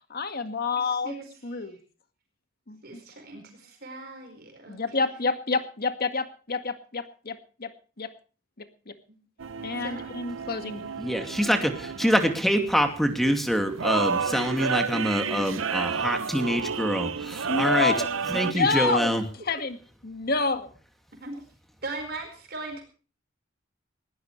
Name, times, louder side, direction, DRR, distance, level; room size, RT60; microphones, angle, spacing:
voice 1, 0.1-1.1 1.4-1.8 2.7-3.0 4.7-7.7 8.0-8.1 8.6-9.0 9.6-10.9 17.5-19.8 20.0-20.7, left 4 dB, 50° left, 8 dB, 1.9 m, -29 dB
voice 2, 0.8-1.8 2.8-5.1 9.8-10.1 18.5-19.0 21.2-21.4 21.8-22.8, right 2 dB, 55° right, 3 dB, 4.8 m, -39 dB
sound 1, 9.4-18.5, right 5 dB, 80° right, 0.7 m, -31 dB
voice 3, 11.0-17.9 18.3-19.2, equal, ahead, 5 dB, 2.4 m, -25 dB
20.5 x 17.0 x 3.3 m, 0.39 s
head